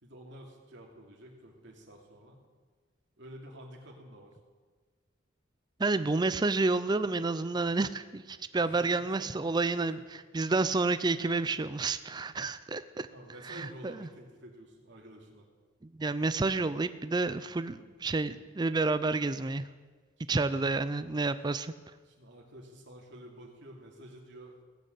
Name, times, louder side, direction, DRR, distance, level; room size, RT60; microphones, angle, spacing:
voice 1, 0.0-2.4 3.2-4.3 8.6-9.3 9.8-10.0 13.1-15.5 20.2-20.6 22.0-24.5, right 1 dB, 60° right, 0 dB, 2.7 m, -50 dB
voice 2, 5.8-10.0 10.3-13.1 13.4-13.7 16.0-19.6 20.3-21.7, right 3 dB, 20° right, 12 dB, 0.4 m, -29 dB
17.0 x 6.6 x 8.1 m, 1.4 s
head